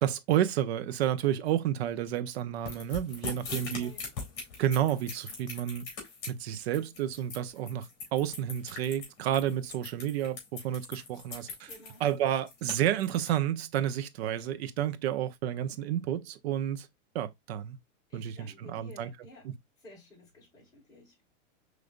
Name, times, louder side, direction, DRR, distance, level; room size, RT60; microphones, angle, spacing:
voice 1, 0.0-3.9 4.6-5.8 6.3-11.7 12.0-16.9 17.1-17.8 18.1-19.1 19.4-19.5, right 11 dB, 55° right, 0.6 m, -30 dB
sound 1, 2.7-13.3, left 4 dB, 35° left, 2.3 m, -41 dB
voice 2, 3.2-4.1 11.6-12.0 18.1-19.5 19.8-21.2, left 1 dB, 10° left, 1.9 m, -53 dB
5.0 x 3.3 x 2.4 m
supercardioid pair, 170°, 38 cm